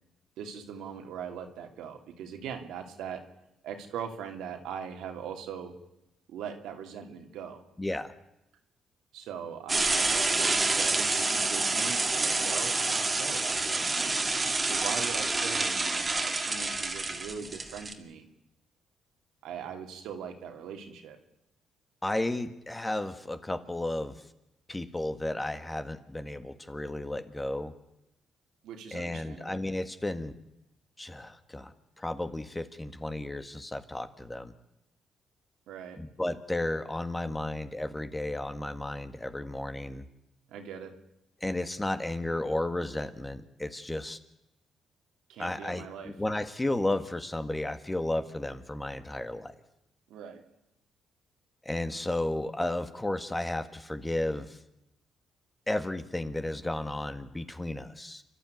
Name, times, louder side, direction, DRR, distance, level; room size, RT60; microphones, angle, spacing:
voice 1, 0.4-3.2 3.6-5.7 6.3-7.6 9.1-14.2 14.6-18.3 19.4-21.2 28.6-29.6 35.7-36.0 40.5-40.9 45.3-46.1 50.1-50.4, right 7 dB, 85° right, 4 dB, 2.7 m, -41 dB
voice 2, 7.8-8.1 22.0-24.1 24.7-27.7 28.9-30.3 31.0-34.5 36.0-40.0 41.4-44.2 45.4-49.5 51.6-54.6 55.7-58.2, left 1 dB, 15° left, 10 dB, 1.7 m, -33 dB
sound 1, 9.7-17.9, right 3 dB, 25° right, 2.1 m, -28 dB
29.0 x 12.0 x 9.4 m, 0.87 s
cardioid pair, 90°, 0 cm